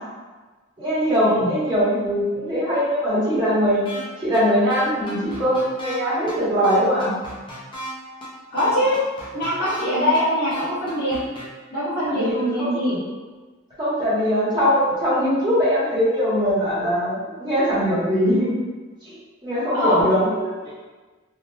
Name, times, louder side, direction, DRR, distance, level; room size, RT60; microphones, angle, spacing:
voice 1, 0.8-3.8 4.2-7.1 12.0-12.8 13.8-18.5 19.0-19.1 19.4-20.7, equal, 20° right, -11 dB, 0.9 m, -21 dB
sound 1, 3.9-4.0 4.3-4.4 4.7-6.0 6.3-6.4 6.6-7.9 8.2-8.3 8.6-9.8 10.1-10.2 10.5-11.4, equal, 25° left, 0.5 m, -35 dB
voice 2, 8.5-9.0 9.3-11.2 11.7-13.0 19.7-20.1, equal, 50° left, -11 dB, 1.1 m, -22 dB
3.0 x 2.1 x 2.2 m, 1.3 s
head